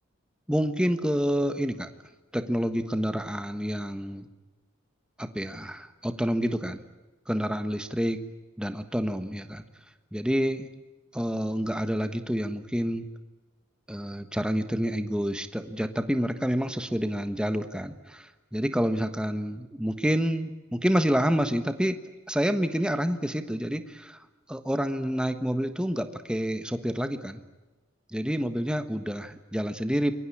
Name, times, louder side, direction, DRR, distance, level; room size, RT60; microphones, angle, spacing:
voice 1, 0.5-1.9 2.3-4.3 5.2-6.8 7.3-8.2 8.6-9.6 10.1-10.7 11.1-13.1 13.9-22.0 22.3-24.2 24.5-27.4 28.1-30.1, equal, 5° right, 9 dB, 1.4 m, -28 dB
27.0 x 22.5 x 8.7 m, 1.2 s
head